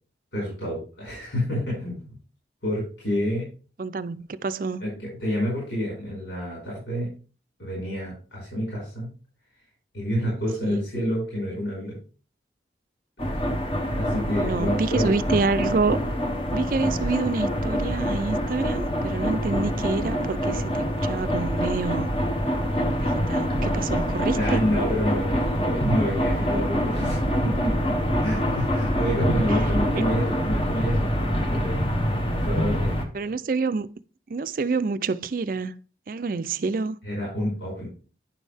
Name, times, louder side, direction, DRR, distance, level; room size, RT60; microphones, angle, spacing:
voice 1, 0.3-2.2 2.6-3.5 4.8-7.1 7.6-9.1 9.9-12.0 14.0-15.1 24.4-31.9 32.3-32.9 37.0-37.9, equal, 90° left, 5.2 m, -28 dB
voice 2, 3.8-4.8 10.6-10.8 14.4-16.0 16.5-22.1 23.0-24.6 29.5-29.6 29.9-30.0 33.1-33.9 34.3-35.8 36.1-37.0, right 4 dB, 50° right, 0.4 m, -27 dB
sound 1, 13.2-33.0, equal, 30° left, 1.0 m, -25 dB
9.8 x 6.3 x 3.4 m
head